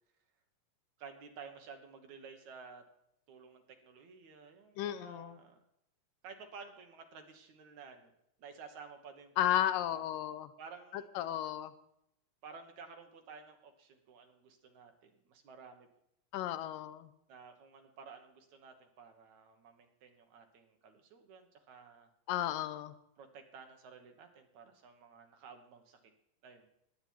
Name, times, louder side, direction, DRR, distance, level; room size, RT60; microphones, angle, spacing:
voice 1, 1.0-2.8 3.3-5.6 6.2-8.1 8.4-10.1 10.6-11.1 12.4-15.9 17.3-22.1 23.2-26.0 26.4-26.7, right 5 dB, 65° right, 5 dB, 2.5 m, -53 dB
voice 2, 4.8-5.4 9.4-10.5 10.9-11.7 16.3-17.1 22.3-22.9, left 12 dB, 85° left, 12 dB, 2.5 m, -34 dB
19.5 x 8.7 x 4.6 m, 0.75 s
omnidirectional pair, 3.8 m